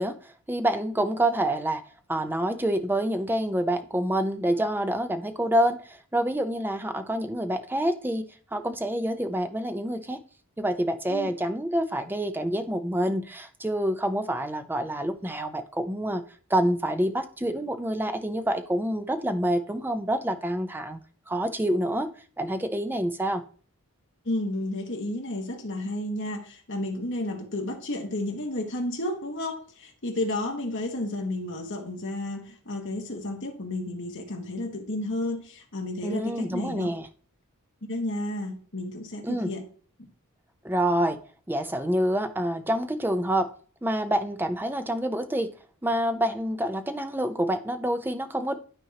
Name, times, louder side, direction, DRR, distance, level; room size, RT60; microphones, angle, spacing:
voice 1, 0.0-1.8 2.1-10.2 10.6-16.2 16.5-21.0 21.3-22.1 22.4-23.4 36.0-37.1 39.2-39.5 40.6-41.2 41.5-43.5 43.8-45.5 45.8-48.6, right 1 dB, 10° right, 0.5 m, -27 dB
voice 2, 24.2-36.9 37.9-39.7 40.0-40.1, left 1 dB, 55° left, 1.5 m, -32 dB
12.0 x 4.5 x 2.9 m
head